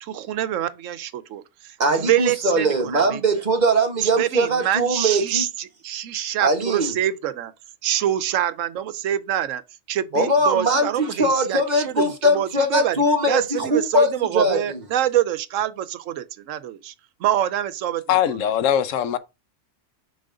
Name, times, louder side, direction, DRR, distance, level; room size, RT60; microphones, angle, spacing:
voice 1, 0.0-3.2 4.2-5.5 5.8-7.5 7.8-9.6 9.9-11.9 12.2-13.0 13.3-16.9 17.2-18.0, right 11 dB, 80° right, 1.0 m, -25 dB
voice 2, 1.8-5.4 6.4-7.0 10.1-14.8, right 1 dB, 35° right, 1.3 m, -21 dB
voice 3, 18.1-19.2, left 10 dB, 75° left, 1.0 m, -21 dB
6.4 x 4.2 x 3.7 m
omnidirectional pair, 1.3 m